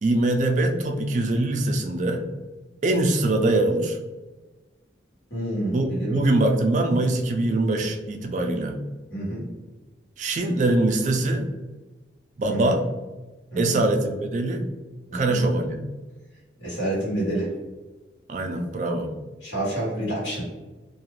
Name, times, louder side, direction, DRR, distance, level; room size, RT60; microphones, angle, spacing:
voice 1, 0.0-2.2 2.8-4.0 5.7-8.8 10.2-11.5 12.4-12.8 13.6-14.6 15.1-15.8 18.3-19.1, right 2 dB, 40° right, 4 dB, 0.3 m, -23 dB
voice 2, 5.3-6.2 9.1-9.5 12.5-12.7 13.5-13.8 15.1-15.4 16.6-17.5 19.4-20.5, right 1 dB, 85° left, -8 dB, 1.3 m, -28 dB
2.4 x 2.3 x 3.1 m, 1.2 s
head